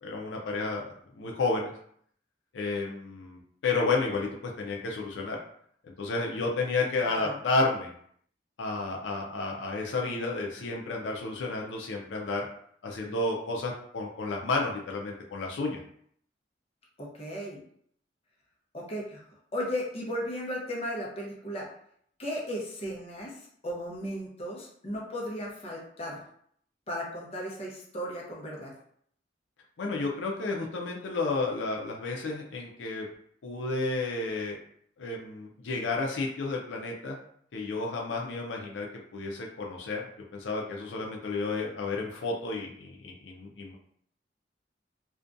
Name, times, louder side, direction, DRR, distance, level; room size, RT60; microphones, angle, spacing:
voice 1, 0.0-1.7 2.5-5.4 5.8-7.9 8.6-12.5 12.8-15.8 29.8-33.1 33.4-34.6 35.0-37.2 37.5-38.9 39.1-40.0 40.3-43.8, left 3 dB, 85° left, 0 dB, 0.4 m, -31 dB
voice 2, 7.0-7.4 17.0-17.6 18.7-19.2 19.5-21.7 22.2-23.3 23.6-26.2 26.9-28.7, equal, 35° left, -3 dB, 0.7 m, -35 dB
2.4 x 2.2 x 2.5 m, 0.65 s
head